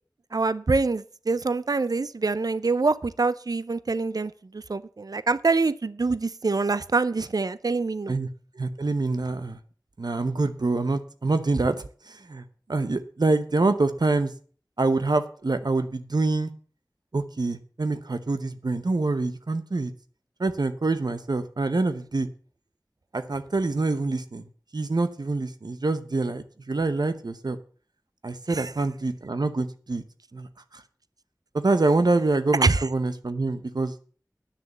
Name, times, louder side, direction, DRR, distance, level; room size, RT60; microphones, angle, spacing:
voice 1, 0.3-8.1 28.5-28.7 32.6-32.9, right 3 dB, 70° right, 17 dB, 0.5 m, -25 dB
voice 2, 8.6-9.6 10.0-11.8 12.1-12.4 12.7-14.3 14.8-16.5 17.1-19.9 20.4-22.3 23.1-24.4 24.7-27.6 28.2-30.0 30.3-30.5 31.5-33.9, right 3 dB, 90° right, 10 dB, 0.9 m, -25 dB
9.9 x 6.5 x 7.2 m, 0.43 s
wide cardioid pair, 40°, 7 cm